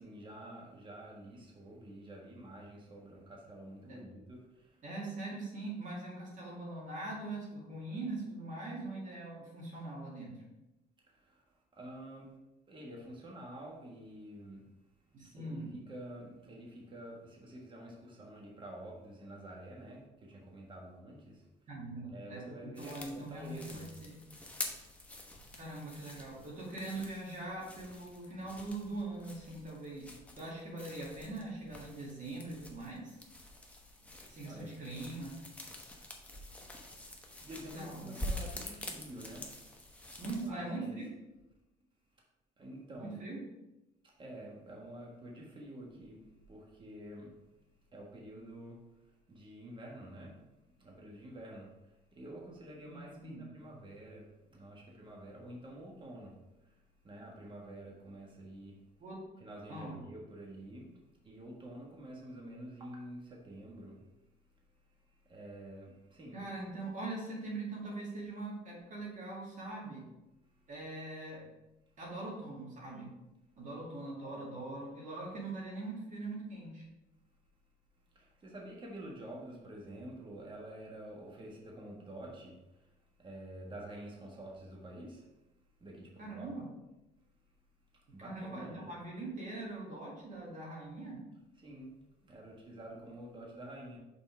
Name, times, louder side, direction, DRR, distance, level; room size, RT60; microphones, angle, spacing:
voice 1, 0.0-4.8 11.1-11.4 11.7-12.3 12.7-14.7 15.3-21.5 22.1-23.9 34.4-34.7 37.4-39.5 40.4-41.0 42.6-43.2 44.0-47.3 47.9-48.8 49.3-50.4 50.8-51.7 52.1-56.4 56.6-56.7 57.0-58.8 59.4-60.9 61.2-64.0 65.2-66.4 78.1-82.6 83.2-85.2 85.8-86.5 88.1-88.9 91.6-91.9 92.2-94.0, right 1 dB, 30° right, -2 dB, 1.5 m, -48 dB
voice 2, 4.8-10.4 15.1-15.7 21.7-24.2 25.5-33.2 34.3-35.4 37.7-38.1 40.2-41.1 43.0-43.4 52.8-53.5 59.0-59.2 59.7-60.0 66.3-70.0 70.7-71.4 72.0-73.1 73.6-76.8 86.2-86.7 88.2-91.2, right 2 dB, 50° right, -4 dB, 2.1 m, -42 dB
sound 1, 22.7-40.5, left 1 dB, 10° left, 1.0 m, -47 dB
5.8 x 4.2 x 4.5 m, 0.99 s
cardioid pair, 110°, 17 cm